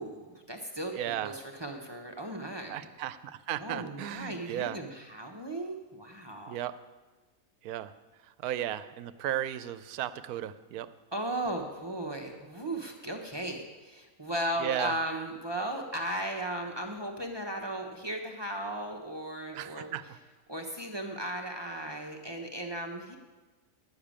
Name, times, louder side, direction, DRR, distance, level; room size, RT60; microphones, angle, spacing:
voice 1, 0.0-0.9 1.2-2.8 3.6-6.6 8.4-8.5 11.1-19.9 20.5-23.2, right 1 dB, 20° right, 2 dB, 0.9 m, -36 dB
voice 2, 1.0-1.3 2.7-4.8 6.5-6.8 7.6-7.9 8.4-10.9 14.6-14.9 19.5-20.0, right 12 dB, 80° right, 14 dB, 1.1 m, -35 dB
11.0 x 6.7 x 8.8 m, 1.2 s
omnidirectional pair, 1.6 m